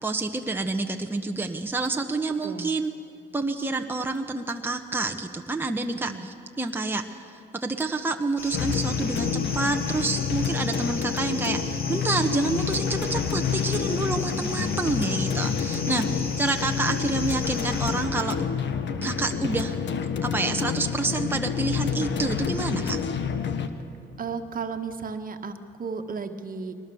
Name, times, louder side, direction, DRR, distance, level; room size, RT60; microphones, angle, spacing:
voice 1, 0.0-2.9 3.3-7.0 7.5-18.3 19.0-19.7 20.2-23.0, right 3 dB, 10° right, 3 dB, 1.2 m, -28 dB
sound 1, 8.4-18.1, left 3 dB, 50° left, 2.7 m, -37 dB
sound 2, 8.5-23.7, left 7 dB, 65° left, 1.4 m, -28 dB
voice 2, 14.4-14.7 24.2-26.7, right 5 dB, 45° right, 6 dB, 1.6 m, -34 dB
22.0 x 19.5 x 7.1 m, 2.9 s
cardioid pair, 90°, 20 cm